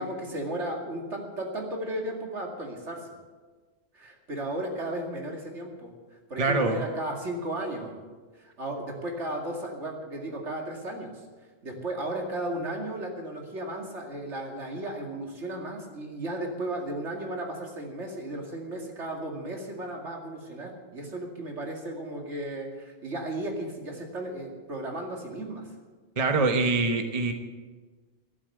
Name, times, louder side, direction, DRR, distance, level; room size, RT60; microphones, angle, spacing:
voice 1, 0.0-3.1 3.9-7.9 8.4-11.2 11.6-25.7, right 1 dB, 85° right, 1 dB, 2.7 m, -35 dB
voice 2, 6.4-6.8 26.2-27.3, right 3 dB, 35° right, 5 dB, 1.2 m, -24 dB
12.0 x 11.5 x 7.9 m, 1.4 s
omnidirectional pair, 1.2 m